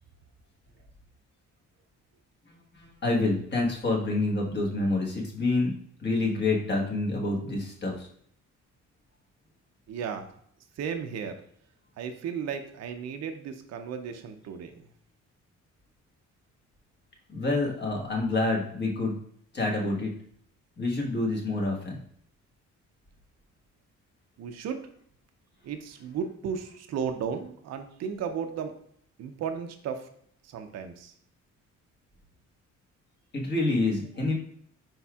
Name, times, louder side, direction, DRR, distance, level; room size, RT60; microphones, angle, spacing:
voice 1, 2.4-5.7 6.0-8.1 17.3-19.2 19.5-20.1 20.8-22.0 33.3-34.3, left 2 dB, 35° left, -1 dB, 1.3 m, -27 dB
voice 2, 9.9-10.3 10.8-11.4 12.0-14.8 24.4-24.8 25.6-28.8 29.2-30.1 30.4-31.1, right 7 dB, 60° right, 6 dB, 0.5 m, -34 dB
4.7 x 4.2 x 2.3 m, 0.65 s
cardioid pair, 90°, 30 cm